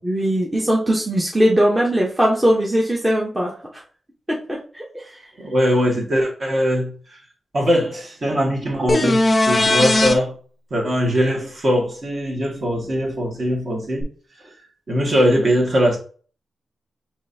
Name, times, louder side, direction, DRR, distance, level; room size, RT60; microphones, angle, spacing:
voice 1, 0.0-3.8 4.3-5.3, equal, 15° right, 0.8 m, -20 dB
voice 2, 5.4-6.9 7.5-9.2 9.5-10.3 10.7-14.1 14.9-16.0, equal, 40° right, 1.5 m, -20 dB
sound 1, 8.9-10.1 14.0-14.1, left 2 dB, 20° left, 0.5 m, -17 dB
5.2 x 3.2 x 2.6 m
wide cardioid pair, 135°, 0 cm